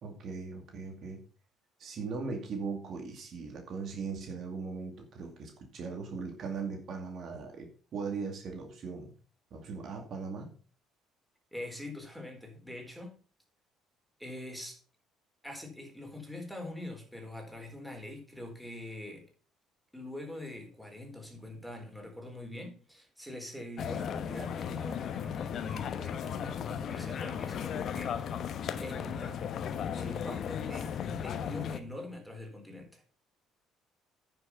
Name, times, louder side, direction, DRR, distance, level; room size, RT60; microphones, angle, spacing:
voice 1, 0.0-1.2 1.8-9.1 9.5-10.5, right 5 dB, 55° right, 3 dB, 2.3 m, -39 dB
voice 2, 11.5-13.1 14.2-14.8 15.4-19.3 19.9-28.5 28.8-29.5 30.0-33.0, left 1 dB, ahead, 2 dB, 4.0 m, -44 dB
sound 1, 23.8-31.8, left 8 dB, 60° left, 1.0 m, -36 dB
9.6 x 6.2 x 5.8 m, 0.39 s
supercardioid pair, 65°, 0 cm